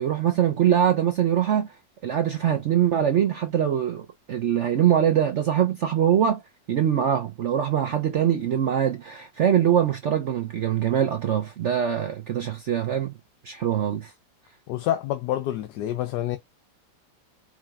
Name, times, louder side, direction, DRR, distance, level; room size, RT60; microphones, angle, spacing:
voice 1, 0.0-1.8 2.0-6.4 6.7-13.1 13.4-14.1, right 9 dB, 70° right, 0.7 m, -23 dB
voice 2, 14.7-16.4, left 12 dB, 75° left, 1.1 m, -27 dB
4.9 x 2.8 x 2.4 m
omnidirectional pair, 1.9 m